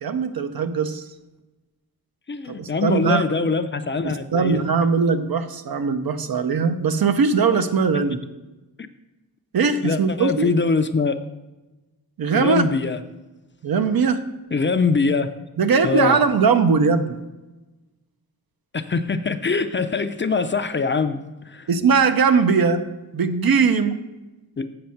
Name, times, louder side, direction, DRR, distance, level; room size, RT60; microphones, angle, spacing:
voice 1, 0.0-1.0 2.5-3.2 4.0-8.2 9.5-10.5 12.2-12.7 13.6-14.2 15.6-17.2 21.7-22.8 23.1-24.0, right 5 dB, 70° right, 9 dB, 0.7 m, -20 dB
voice 2, 2.3-4.6 9.8-11.2 12.3-13.0 14.5-15.3 15.8-16.2 18.7-21.7 24.6-24.7, left 4 dB, 30° left, 9 dB, 0.4 m, -23 dB
7.8 x 6.2 x 5.7 m, 1.1 s
wide cardioid pair, 125°, 37 cm